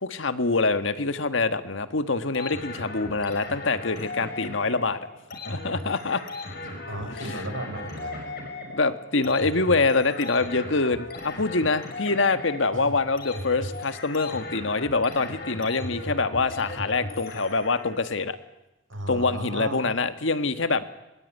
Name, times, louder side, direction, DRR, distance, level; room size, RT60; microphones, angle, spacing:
voice 1, 0.0-5.0 5.5-6.2 8.7-18.4 19.1-20.8, left 3 dB, 75° left, 10 dB, 1.6 m, -25 dB
sound 1, 2.3-18.1, left 2 dB, 50° left, 6.0 m, -37 dB
voice 2, 6.6-8.4 12.7-12.9 18.9-19.8, right 1 dB, 80° right, 5 dB, 6.1 m, -35 dB
22.5 x 21.5 x 9.4 m, 0.98 s
head